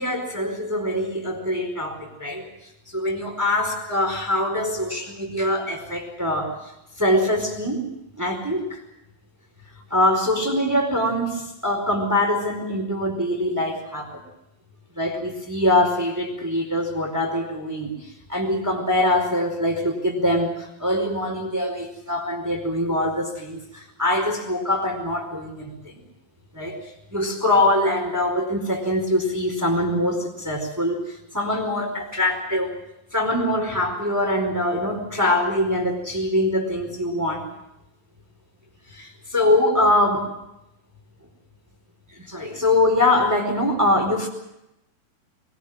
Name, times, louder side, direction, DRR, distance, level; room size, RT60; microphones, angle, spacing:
voice 1, 0.0-2.5 2.9-6.6 7.0-7.8 8.2-8.8 9.9-14.2 15.0-26.0 26.5-32.7 33.1-37.5 38.9-40.3 42.1-44.3, left 1 dB, 5° right, 3 dB, 4.0 m, -23 dB
23.0 x 21.5 x 7.4 m, 0.86 s
omnidirectional pair, 4.8 m